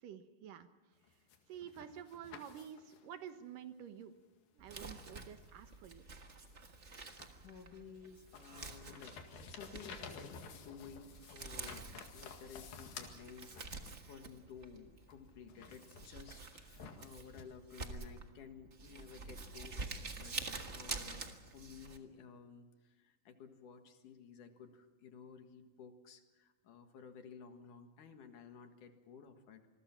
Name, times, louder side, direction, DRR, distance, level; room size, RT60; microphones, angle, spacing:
voice 1, 0.0-0.7 1.5-4.1 4.5-6.0, right 9 dB, 75° right, 9 dB, 2.7 m, -50 dB
sound 1, 1.0-3.1 4.7-4.8 5.4-7.5 7.9-14.1 15.1-17.4, left 5 dB, 90° left, 3.8 m, -53 dB
Crumpling crinkling, 4.6-22.0, right 3 dB, 55° right, 0.7 m, -48 dB
voice 2, 7.4-9.2 9.5-20.3 20.7-29.6, left 6 dB, 65° left, 6 dB, 3.1 m, -54 dB
27.0 x 21.5 x 5.9 m, 1.2 s
omnidirectional pair, 4.0 m